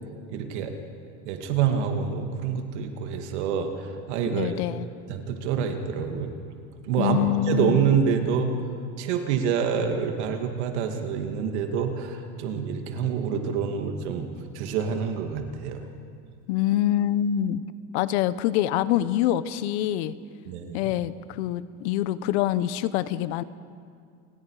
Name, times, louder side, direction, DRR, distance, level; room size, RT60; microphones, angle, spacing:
voice 1, 0.3-0.7 1.3-4.5 5.1-6.3 6.9-7.2 7.4-8.5 9.0-14.3 14.5-15.8 20.5-20.9, right 7 dB, 85° right, 5 dB, 2.3 m, -27 dB
voice 2, 4.3-4.9 7.0-7.8 16.5-17.6 17.9-20.1 20.7-23.4, left 12 dB, 75° left, 16 dB, 0.9 m, -25 dB
28.5 x 19.0 x 4.9 m, 2.3 s
supercardioid pair, 150°, 34 cm